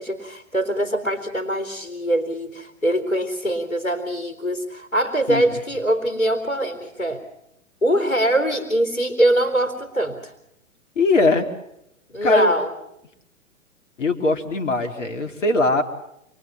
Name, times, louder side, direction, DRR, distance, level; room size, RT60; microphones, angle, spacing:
voice 1, 0.0-7.2 7.8-10.3 12.1-12.7, right 1 dB, 85° left, 4 dB, 3.9 m, -23 dB
voice 2, 11.0-11.5 12.2-12.5 14.0-15.8, left 2 dB, 60° left, 6 dB, 3.5 m, -20 dB
28.0 x 21.5 x 5.7 m, 0.81 s
figure-of-eight pair, 115°, 41 cm